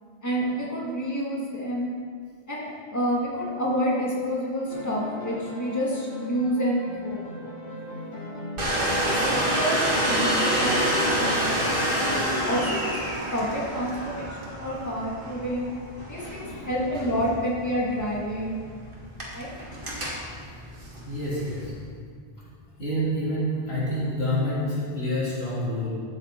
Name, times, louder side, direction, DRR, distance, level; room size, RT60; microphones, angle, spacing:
voice 1, 0.2-1.9 2.5-7.3 8.9-15.7 16.1-18.5 19.3-19.5, equal, 15° left, -5 dB, 1.9 m, -29 dB
sound 1, 4.7-9.6 9.9-13.3, left 2 dB, 45° left, 1.4 m, -37 dB
Domestic sounds home sounds, 8.6-21.7, right 1 dB, 55° right, 2.1 m, -28 dB
voice 2, 21.1-21.7 22.4-22.5 22.8-25.9, equal, 75° left, -8 dB, 3.4 m, -28 dB
12.5 x 8.0 x 4.4 m, 2.1 s
omnidirectional pair, 1.1 m